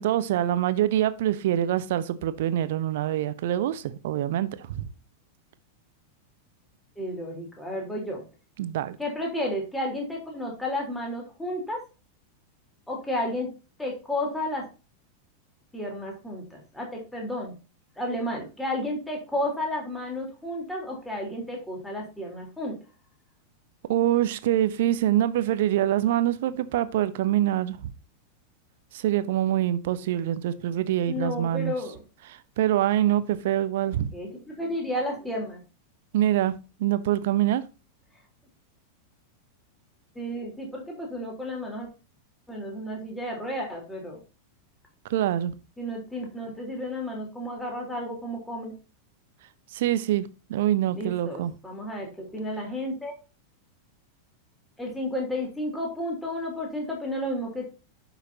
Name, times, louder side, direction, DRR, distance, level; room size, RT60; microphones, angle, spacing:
voice 1, 0.0-4.9 8.6-9.0 23.9-27.9 28.9-31.7 32.6-34.1 36.1-36.5 36.8-37.6 45.1-45.5 49.7-51.5, right 12 dB, 55° right, 0.8 m, -25 dB
voice 2, 7.0-8.2 9.0-11.8 12.9-13.5 13.8-14.6 15.7-17.5 18.0-22.7 31.1-32.0 33.9-35.6 40.2-41.9 42.5-44.2 45.8-48.7 50.9-53.1 54.8-57.7, left 1 dB, 5° left, 3.7 m, -32 dB
11.0 x 6.0 x 2.8 m
figure-of-eight pair, 90°, 0 cm